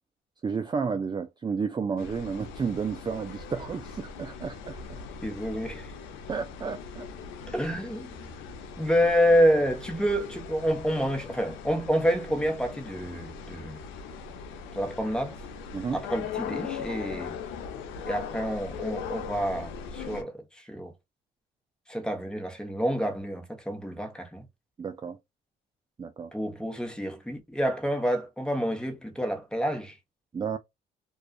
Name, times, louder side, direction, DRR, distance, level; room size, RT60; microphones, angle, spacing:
voice 1, 0.4-5.0 6.3-7.1 15.7-16.0 24.8-25.2 26.0-26.3 30.3-30.6, right 5 dB, 20° right, 0.4 m, -32 dB
sound 1, 2.0-20.2, left 6 dB, 85° left, 0.5 m, -40 dB
voice 2, 5.2-5.9 7.5-8.2 8.8-13.8 14.7-15.4 15.9-17.4 18.1-20.9 21.9-24.4 26.3-30.0, equal, 5° left, 0.9 m, -28 dB
2.3 x 2.3 x 2.3 m
supercardioid pair, 75°, 19 cm